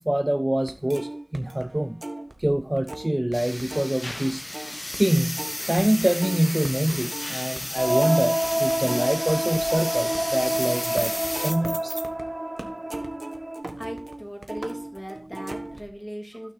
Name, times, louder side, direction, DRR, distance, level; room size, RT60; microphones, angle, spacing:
voice 1, 0.0-2.0 2.4-4.4 5.0-12.0, right 1 dB, 25° right, 0.3 m, -25 dB
sound 1, 0.6-3.3 3.6-12.2 12.6-15.9, right 2 dB, 65° right, 1.3 m, -38 dB
sound 2, 3.3-11.5, left 1 dB, 35° left, 0.5 m, -33 dB
sound 3, 7.8-13.6, right 1 dB, 50° right, 3.0 m, -28 dB
voice 2, 13.8-16.5, equal, ahead, 2.7 m, -38 dB
16.0 x 6.2 x 2.5 m
wide cardioid pair, 45°, 0 cm